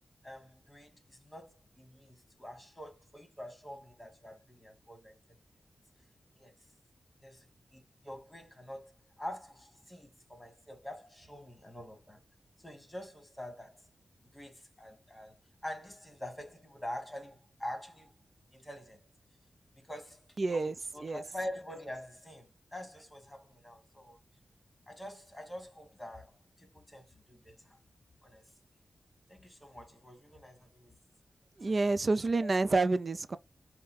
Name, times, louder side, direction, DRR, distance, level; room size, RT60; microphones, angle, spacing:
voice 1, 0.2-5.2 6.4-6.5 7.2-7.5 7.7-8.9 9.2-12.2 12.6-13.8 14.3-15.4 15.6-18.1 18.5-19.0 19.8-20.2 20.5-24.2 24.9-26.4 26.7-27.5 28.2-28.4 29.3-30.9 32.4-32.5, left 1 dB, 15° left, 1.9 m, -45 dB
voice 2, 20.4-20.8 21.0-21.2 31.6-33.4, right 3 dB, 50° right, 0.5 m, -28 dB
5.4 x 2.2 x 3.8 m
wide cardioid pair, 75°, 0 cm